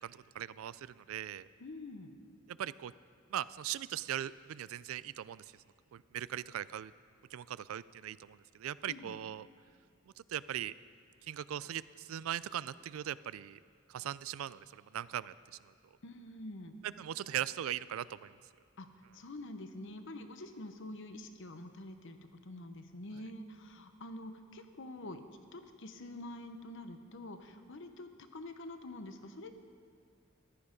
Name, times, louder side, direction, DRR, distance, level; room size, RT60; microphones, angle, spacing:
voice 1, 0.0-1.5 2.5-2.9 3.3-5.4 5.9-6.9 7.3-9.5 10.2-10.7 11.3-13.6 13.9-15.3 16.8-18.4, right 11 dB, 80° right, 18 dB, 0.3 m, -39 dB
voice 2, 1.6-2.1 8.9-9.2 16.0-16.8 18.8-18.9 19.1-25.2 25.5-29.5, left 1 dB, 65° left, 8 dB, 0.9 m, -46 dB
14.5 x 11.0 x 5.2 m, 2.3 s
head